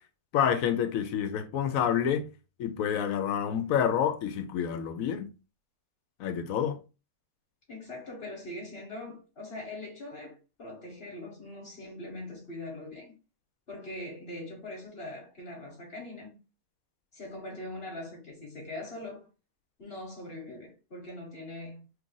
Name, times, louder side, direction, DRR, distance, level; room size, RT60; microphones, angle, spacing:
voice 1, 0.3-2.3 2.6-5.3 6.2-6.8, left 8 dB, 75° left, 1.0 m, -28 dB
voice 2, 7.7-13.1 13.7-16.4 17.1-19.3 19.8-21.9, left 1 dB, 45° left, 1.2 m, -42 dB
3.0 x 2.4 x 3.8 m
omnidirectional pair, 1.5 m